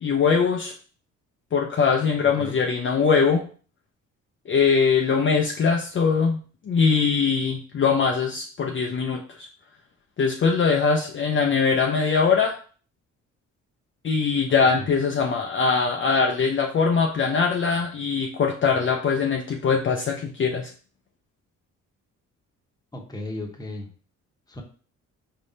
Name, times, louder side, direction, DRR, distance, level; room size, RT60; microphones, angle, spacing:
voice 1, 0.0-0.7 1.5-3.4 4.5-6.4 6.7-9.5 10.2-12.5 14.0-20.7, left 5 dB, 40° left, 1 dB, 0.6 m, -22 dB
voice 2, 22.9-23.9 24.5-24.6, left 2 dB, 15° left, 2 dB, 1.0 m, -35 dB
4.4 x 3.6 x 2.7 m, 0.41 s
cardioid pair, 90°, 30 cm